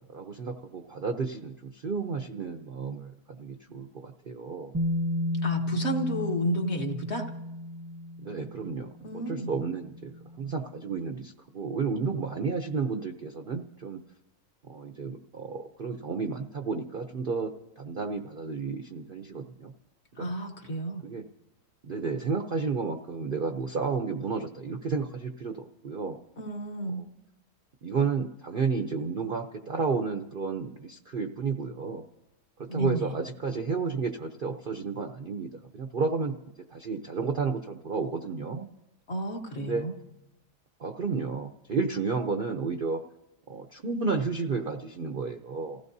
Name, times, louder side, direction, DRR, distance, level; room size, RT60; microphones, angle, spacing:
voice 1, 0.1-4.7 8.2-8.9 9.3-10.1 10.4-14.0 14.7-19.7 20.1-20.3 21.0-21.3 21.8-26.2 27.8-32.0 32.6-38.7 39.6-39.9 40.8-43.0 43.5-45.8, right 4 dB, 50° right, 5 dB, 0.6 m, -32 dB
Bass guitar, 4.7-10.8, left 1 dB, 15° right, 0.7 m, -34 dB
voice 2, 5.4-7.3 9.0-9.5 20.2-21.0 26.4-27.0 32.7-33.1 39.1-39.9, right 1 dB, 45° left, 2 dB, 1.5 m, -31 dB
29.5 x 16.0 x 2.7 m, 0.97 s
omnidirectional pair, 1.7 m